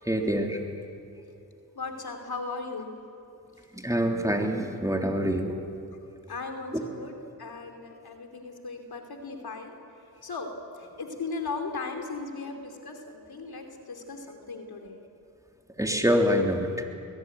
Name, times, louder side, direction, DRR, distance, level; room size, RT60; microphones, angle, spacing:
voice 1, 0.0-0.6 3.7-5.6 6.7-6.8 15.8-16.8, equal, 10° right, 2 dB, 3.1 m, -25 dB
voice 2, 1.7-2.9 4.4-4.5 6.3-7.1 7.4-9.7 10.2-15.0, left 3 dB, 70° left, 4 dB, 2.9 m, -37 dB
21.5 x 18.5 x 9.3 m, 2.6 s
cardioid pair, 45°, 38 cm